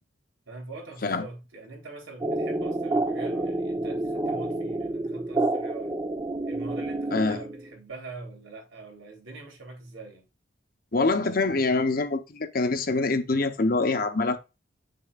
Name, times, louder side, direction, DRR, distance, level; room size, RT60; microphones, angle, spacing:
voice 1, 0.5-6.0 6.4-10.3, right 3 dB, 85° right, 3.3 m, -43 dB
sound 1, 2.2-7.7, right 2 dB, 20° right, 0.7 m, -29 dB
voice 2, 7.1-7.4 10.9-14.4, left 3 dB, 45° left, 0.8 m, -25 dB
7.6 x 6.7 x 2.4 m
head